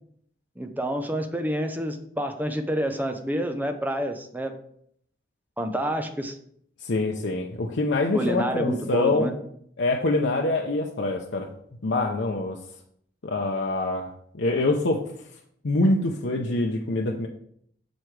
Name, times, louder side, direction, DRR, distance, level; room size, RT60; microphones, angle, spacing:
voice 1, 0.6-4.5 5.6-6.4 8.1-9.4, right 1 dB, 10° right, 6 dB, 0.7 m, -28 dB
voice 2, 6.8-9.3 9.8-11.5 11.8-12.6 13.2-14.1 14.3-15.0 15.6-17.3, left 2 dB, 90° left, 1 dB, 0.7 m, -25 dB
8.1 x 6.1 x 3.3 m, 0.67 s
head